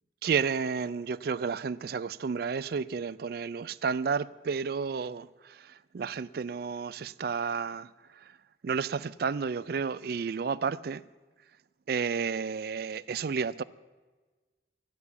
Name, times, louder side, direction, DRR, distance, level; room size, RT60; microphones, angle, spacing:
voice 1, 0.2-8.4 8.6-11.0 11.9-13.6, right 5 dB, 55° right, 0.3 m, -32 dB
13.5 x 9.7 x 7.0 m
head